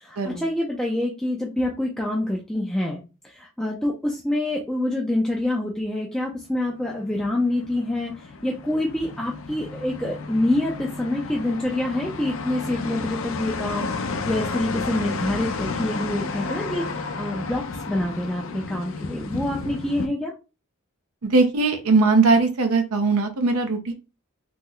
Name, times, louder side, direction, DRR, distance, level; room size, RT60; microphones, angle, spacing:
voice 1, 0.0-20.3, left 1 dB, ahead, -2 dB, 0.3 m, -26 dB
sound 1, 6.6-20.1, left 4 dB, 65° left, 0.4 m, -32 dB
voice 2, 21.2-23.9, right 3 dB, 85° right, 5 dB, 0.6 m, -20 dB
3.1 x 2.0 x 3.6 m, 0.30 s
head